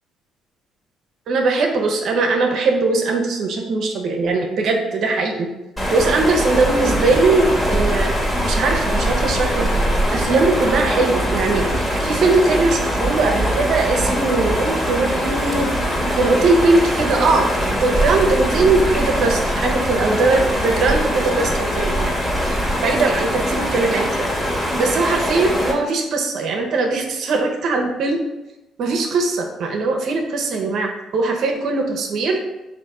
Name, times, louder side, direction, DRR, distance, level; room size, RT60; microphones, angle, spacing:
voice 1, 1.3-5.5 5.9-8.1 8.4-9.7 10.1-15.7 16.1-22.2 22.8-24.3 24.8-28.2 28.8-32.4, right 3 dB, 65° right, 2 dB, 0.8 m, -20 dB
sound 1, 5.8-25.7, equal, 10° left, 1.6 m, -22 dB
4.1 x 2.7 x 4.8 m, 1.0 s
supercardioid pair, 70°, 0 cm